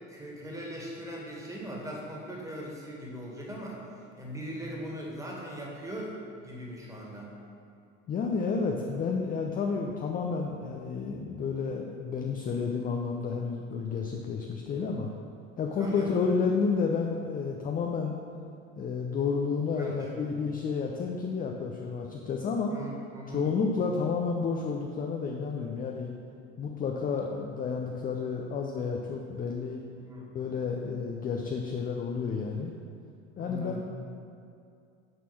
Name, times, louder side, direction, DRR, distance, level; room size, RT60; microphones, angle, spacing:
voice 1, 0.1-7.3 15.8-16.1 19.8-20.5 22.7-23.5 29.9-30.3 33.4-33.8, equal, 10° right, -3 dB, 2.0 m, -40 dB
voice 2, 8.1-15.1 15.6-18.2 18.8-22.7 23.3-26.1 26.6-29.8 30.3-32.7 33.4-33.9, left 5 dB, 20° left, 1 dB, 0.6 m, -31 dB
6.8 x 6.0 x 6.1 m, 2.4 s
figure-of-eight pair, 70°, 39 cm